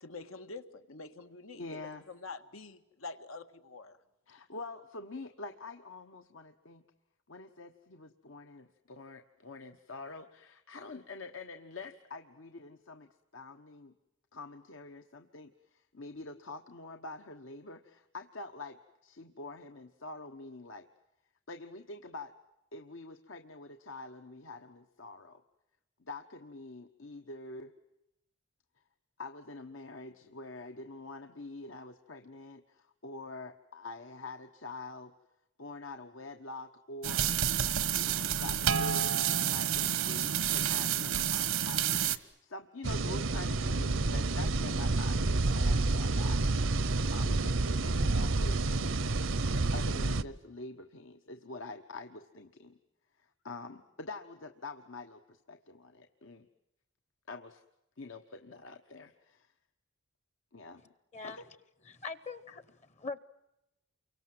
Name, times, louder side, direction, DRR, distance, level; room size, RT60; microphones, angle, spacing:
voice 1, 0.0-4.0, left 3 dB, 85° left, 8 dB, 1.9 m, -46 dB
voice 2, 1.5-2.1 4.3-6.8 7.3-13.9 14.3-20.9 21.5-22.3 22.7-25.4 26.0-27.7 29.2-35.1 35.6-37.3 37.9-46.4 47.1-49.0 49.7-52.8 53.1-56.5 57.3-57.6 58.0-59.5 60.5-60.8 61.2-61.5, left 3 dB, 70° left, 6 dB, 1.3 m, -46 dB
sound 1, 37.0-42.2, right 9 dB, 90° right, 1.4 m, -29 dB
sound 2, 42.8-50.2, right 2 dB, 70° right, 0.9 m, -29 dB
voice 3, 61.9-63.2, left 4 dB, 35° left, 15 dB, 1.0 m, -42 dB
29.0 x 24.0 x 7.8 m, 0.90 s
head